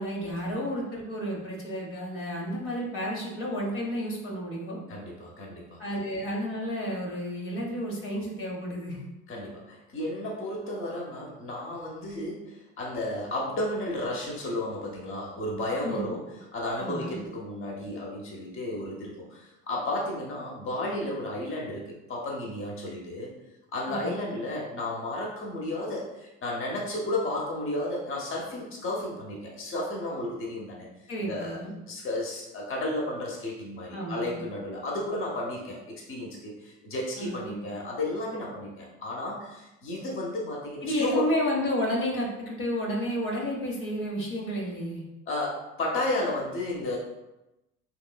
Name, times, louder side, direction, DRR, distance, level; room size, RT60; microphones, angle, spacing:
voice 1, 0.0-4.8 5.8-9.0 15.8-16.1 16.8-17.2 23.9-24.2 31.1-31.7 33.9-34.4 37.2-37.6 40.8-45.0, equal, 60° left, -3 dB, 1.0 m, -31 dB
voice 2, 4.9-5.8 9.3-16.2 16.5-23.3 23.7-30.9 31.2-31.6 31.9-41.3 45.3-47.0, left 1 dB, 30° left, -2 dB, 0.9 m, -33 dB
3.0 x 3.0 x 2.2 m, 0.97 s
hypercardioid pair, 65°, 39 cm